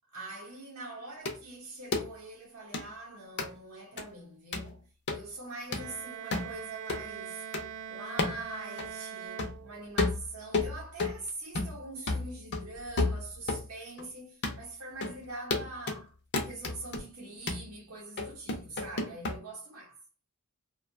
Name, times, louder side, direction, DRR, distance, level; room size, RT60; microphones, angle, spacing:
voice 1, 0.1-7.5 7.9-16.1 16.4-20.0, right 2 dB, 85° right, 0.7 m, -44 dB
sound 1, 1.3-1.4 1.9-2.1 2.7-2.9 3.4-3.5 4.0-4.1 4.5-4.7 5.1-5.2 5.7-5.9 6.3-6.5 6.9-7.0 7.5-7.7 8.2-8.4 8.8-8.9 9.4-9.6 10.0-11.2 11.5-11.8 12.1-13.7 14.0-14.1 14.4-14.6 15.0-15.2 15.5-16.0 16.3-17.0 17.5-17.7 18.2-19.4, left 3 dB, 55° left, 0.6 m, -32 dB
Bowed string instrument, 5.7-10.2, right 8 dB, 55° right, 0.3 m, -42 dB
2.5 x 2.2 x 2.5 m
head